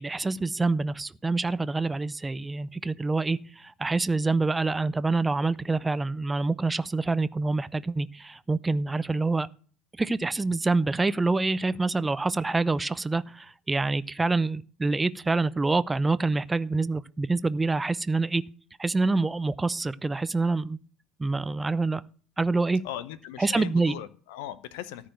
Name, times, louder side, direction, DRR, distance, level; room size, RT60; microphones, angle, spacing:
voice 1, 0.0-9.5 10.0-18.4 18.8-20.8 21.2-22.0 22.4-22.8 23.4-23.9, right 3 dB, 15° right, 0.5 m, -26 dB
voice 2, 22.8-25.1, left 12 dB, 65° left, 0.7 m, -38 dB
13.5 x 4.7 x 7.7 m
figure-of-eight pair, 65°, 0 cm